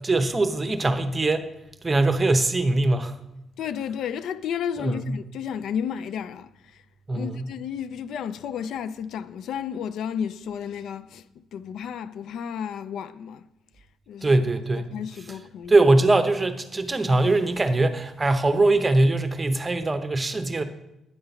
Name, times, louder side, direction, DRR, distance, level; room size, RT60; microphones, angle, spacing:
voice 1, 0.0-1.4 1.8-3.1 4.8-5.2 7.1-7.5 14.2-14.8 15.7-20.6, right 2 dB, 25° right, 0.8 m, -22 dB
voice 2, 3.6-6.8 7.1-13.5 14.1-14.4 14.8-15.7, left 8 dB, 75° left, 0.4 m, -32 dB
9.8 x 3.8 x 6.9 m
cardioid pair, 90°, 0 cm